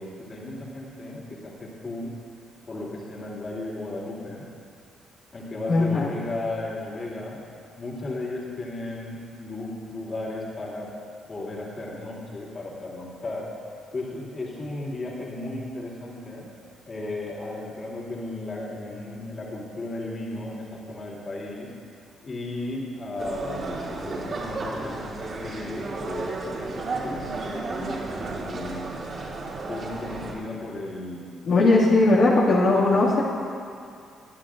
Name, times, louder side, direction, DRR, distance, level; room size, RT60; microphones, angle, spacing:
voice 1, 0.0-2.1 2.7-4.5 5.3-7.4 7.8-10.9 11.3-13.5 13.9-16.5 16.9-21.7 22.2-27.9 28.3-28.9 29.7-31.7 32.1-33.1, left 2 dB, 40° left, -4 dB, 3.0 m, -35 dB
voice 2, 5.7-6.1 31.4-33.2, left 2 dB, 70° left, -7 dB, 2.1 m, -19 dB
sound 1, 23.2-30.3, right 2 dB, 55° right, 3.4 m, -33 dB
22.5 x 11.5 x 2.6 m, 2.3 s
cardioid pair, 90°, 0 cm